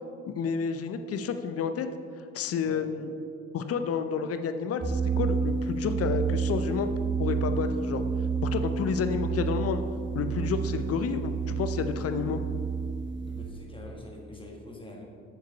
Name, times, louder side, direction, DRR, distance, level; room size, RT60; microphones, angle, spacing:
voice 1, 0.3-1.9 2.3-3.1 3.5-6.9 7.2-8.0 8.4-9.8 10.1-12.4, left 6 dB, 40° left, 9 dB, 0.7 m, -30 dB
sound 1, 4.8-13.5, right 5 dB, 30° right, 1.2 m, -30 dB
voice 2, 13.3-15.0, left 1 dB, 15° left, 0 dB, 1.7 m, -45 dB
9.4 x 6.6 x 4.0 m, 2.4 s
figure-of-eight pair, 50°, 37 cm